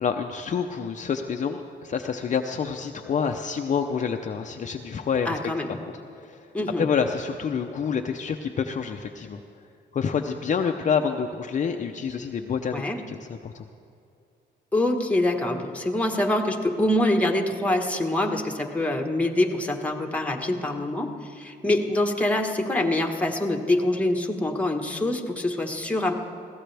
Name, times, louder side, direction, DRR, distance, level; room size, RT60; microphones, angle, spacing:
voice 1, 0.0-5.4 5.7-5.8 6.1-6.5 6.8-9.4 9.9-13.6, left 6 dB, 40° left, 4 dB, 0.6 m, -28 dB
voice 2, 5.2-5.7 6.5-6.9 12.7-13.0 14.7-21.1 21.3-26.1, left 1 dB, 5° left, 2 dB, 1.4 m, -25 dB
21.5 x 16.0 x 3.4 m, 2.5 s
cardioid pair, 105°, 19 cm